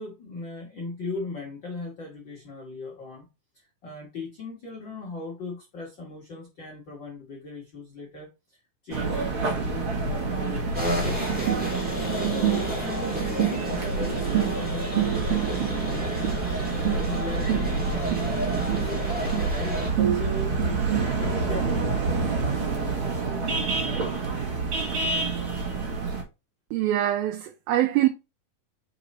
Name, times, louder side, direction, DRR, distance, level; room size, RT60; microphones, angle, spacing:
voice 1, 0.0-3.3 3.5-8.6 8.8-10.7 11.0-11.7 12.2-24.1, left 3 dB, 70° left, 1.0 m, -39 dB
sound 1, 8.9-26.2, right 5 dB, 50° right, 1.9 m, -27 dB
sound 2, 10.7-19.9, left 1 dB, 5° right, 1.1 m, -33 dB
voice 2, 26.7-28.1, right 13 dB, 80° right, 2.4 m, -23 dB
4.9 x 4.7 x 4.1 m
omnidirectional pair, 4.3 m